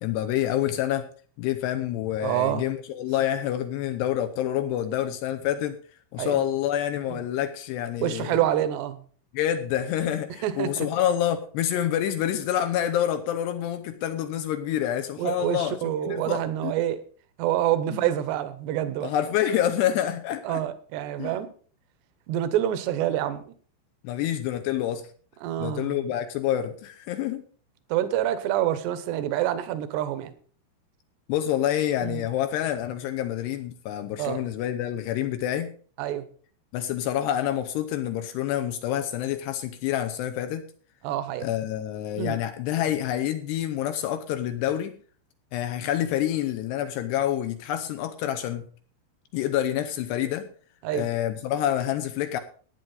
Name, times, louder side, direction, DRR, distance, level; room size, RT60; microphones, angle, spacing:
voice 1, 0.0-1.1 1.4-5.8 6.1-8.5 9.3-15.8 16.1-16.7 17.9-18.1 19.0-20.6 21.2-21.4 24.0-25.1 25.6-27.4 31.3-35.7 36.7-40.7 41.4-45.0 45.5-48.7 49.3-50.5 50.9-52.4, left 11 dB, 75° left, 8 dB, 2.6 m, -27 dB
voice 2, 2.2-2.6 6.2-6.4 7.1-7.2 8.0-9.0 10.4-10.9 15.2-17.0 17.4-19.1 20.4-21.5 22.3-23.4 25.4-25.9 27.9-30.3 32.0-32.2 34.2-34.4 36.0-36.2 41.0-41.5 42.2-42.4 50.8-51.1, right 12 dB, 75° right, 12 dB, 2.9 m, -27 dB
15.5 x 9.6 x 4.0 m, 0.43 s
omnidirectional pair, 5.5 m